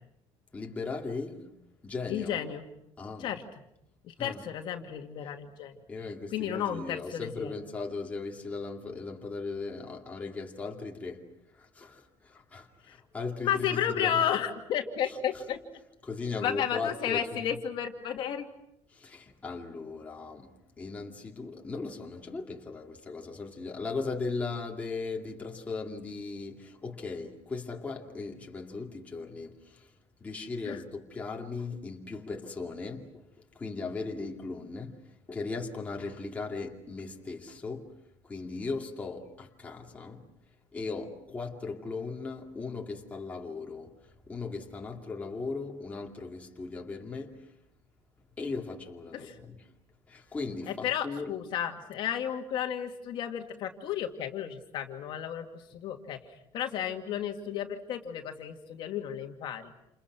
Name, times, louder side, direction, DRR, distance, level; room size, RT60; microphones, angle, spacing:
voice 1, 0.5-1.6 1.8-2.4 3.0-3.3 4.2-4.4 5.9-14.2 15.1-15.4 16.0-17.6 18.9-29.9 30.2-37.9 38.2-40.3 40.7-47.5 48.4-49.7 50.1-51.3, left 4 dB, 15° left, 2.5 m, -38 dB
voice 2, 2.1-2.6 3.2-3.4 4.1-5.7 6.3-7.5 12.9-13.0 13.4-15.6 16.4-18.5 30.6-30.8 49.1-49.4 50.8-56.2 56.5-59.6, left 9 dB, 50° left, 2.3 m, -32 dB
29.5 x 28.5 x 6.1 m
cardioid pair, 180°, 11 cm